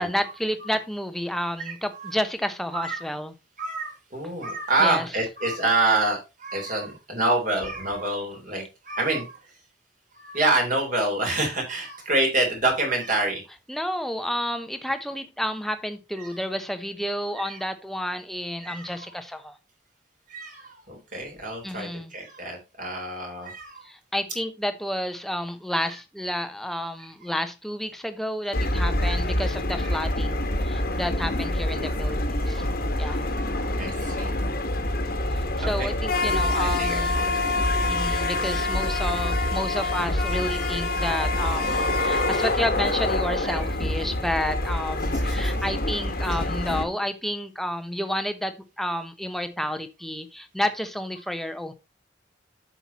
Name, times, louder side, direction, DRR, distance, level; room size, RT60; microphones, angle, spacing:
voice 1, 0.0-3.3 4.8-5.1 13.7-19.6 21.6-22.1 23.8-32.7 32.9-33.3 35.3-37.2 37.9-51.7, equal, ahead, 9 dB, 0.9 m, -30 dB
voice 2, 1.7-2.1 2.7-3.0 3.6-9.4 10.1-13.4 16.2-16.3 17.6-17.7 18.6-18.9 20.3-23.8 29.8-30.0 32.0-32.7 33.8-34.3 35.6-35.9 36.6-37.5 38.7-39.0 41.7-41.8 43.4-43.7 45.1-45.5, right 2 dB, 45° right, 2 dB, 3.5 m, -27 dB
sound 1, 28.5-46.8, left 1 dB, 55° left, 1.4 m, -26 dB
8.1 x 5.9 x 4.1 m, 0.26 s
head